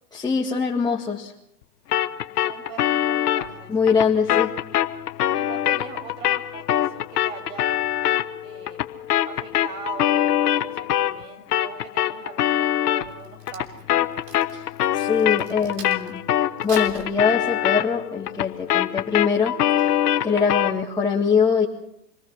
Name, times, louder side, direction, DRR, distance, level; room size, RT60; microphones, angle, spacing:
voice 1, 0.1-1.3 3.7-4.5 14.5-14.7 14.9-16.2 16.6-21.7, left 6 dB, 10° left, -4 dB, 1.9 m, -23 dB
sound 1, 1.9-11.2 11.5-20.8, left 11 dB, 75° left, 1.1 m, -24 dB
voice 2, 2.3-3.7 5.3-7.8 8.4-8.8 9.3-14.1, right 6 dB, 55° right, 3 dB, 5.6 m, -40 dB
Crack, 13.1-16.2 16.6-17.8 18.3-18.6, right 5 dB, 75° right, 3.6 m, -42 dB
26.5 x 19.0 x 6.2 m, 0.78 s
hypercardioid pair, 110°, 47 cm